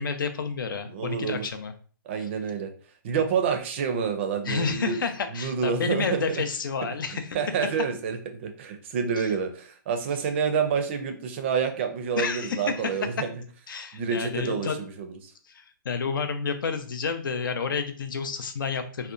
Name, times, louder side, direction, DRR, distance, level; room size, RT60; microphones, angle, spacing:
voice 1, 0.0-1.7 4.4-7.4 12.2-12.7 13.7-14.8 15.5-19.1, left 5 dB, 80° left, 8 dB, 0.5 m, -30 dB
voice 2, 0.9-1.4 2.1-2.7 3.0-5.0 5.3-6.2 7.1-13.3 13.9-15.1, right 6 dB, 35° right, 7 dB, 0.4 m, -28 dB
2.7 x 2.1 x 2.4 m, 0.42 s
hypercardioid pair, 160°, 11 cm